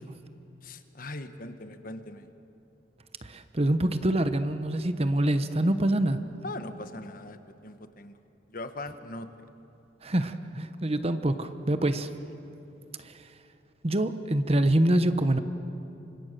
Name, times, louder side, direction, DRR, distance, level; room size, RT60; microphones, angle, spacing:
voice 1, 0.6-2.3 6.4-8.1 8.5-9.3, left 2 dB, 50° left, 9 dB, 1.3 m, -40 dB
voice 2, 3.2-6.2 10.0-12.1 13.0-13.3 13.8-15.4, right 1 dB, 35° right, 10 dB, 1.0 m, -25 dB
28.5 x 25.5 x 6.7 m, 2.9 s
head